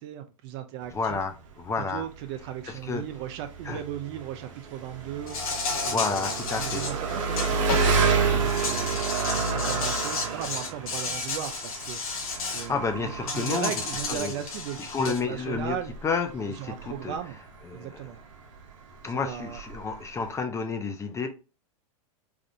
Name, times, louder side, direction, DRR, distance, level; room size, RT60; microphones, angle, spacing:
voice 1, 0.0-1.2 1.8-9.0 9.3-15.9 16.6-17.4 17.7-18.2 19.1-19.6, right 10 dB, 50° right, 0.5 m, -37 dB
Engine, 0.8-20.4, right 5 dB, 65° right, 0.9 m, -31 dB
voice 2, 0.9-2.0 2.7-3.1 3.6-3.8 5.9-6.9 12.4-13.7 14.1-14.3 14.8-15.8 16.0-17.2 17.7-18.0 19.0-21.3, left 4 dB, 15° left, 0.4 m, -30 dB
Insect, 5.3-8.0 8.4-12.7 13.3-15.2, left 4 dB, 80° left, 1.0 m, -33 dB
3.4 x 2.5 x 2.6 m
hypercardioid pair, 120°, 18 cm